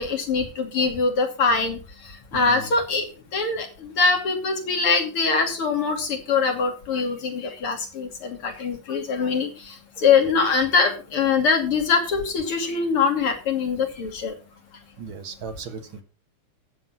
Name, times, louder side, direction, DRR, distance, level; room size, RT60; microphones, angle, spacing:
voice 1, 0.0-1.8 2.3-3.0 3.3-9.5 10.0-14.3, left 5 dB, 85° left, 3 dB, 3.5 m, -23 dB
voice 2, 2.3-2.7 15.0-16.0, right 5 dB, 70° right, 8 dB, 2.3 m, -37 dB
11.0 x 7.9 x 5.8 m, 0.34 s
omnidirectional pair, 2.4 m